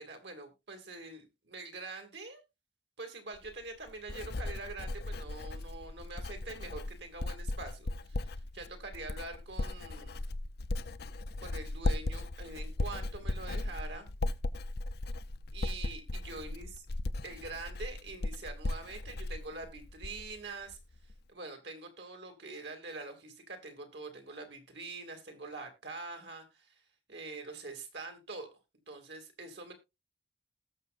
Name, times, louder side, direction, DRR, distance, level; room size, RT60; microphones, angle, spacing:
voice 1, 0.0-2.4 3.0-10.2 11.4-14.1 15.5-16.7 17.2-20.8 21.3-26.8 27.1-28.6 28.9-29.7, right 3 dB, 65° right, 6 dB, 2.5 m, -45 dB
Writing, 3.4-20.4 20.7-21.1, left 2 dB, 60° left, 0.6 m, -37 dB
19.0 x 6.6 x 2.6 m, 0.24 s
head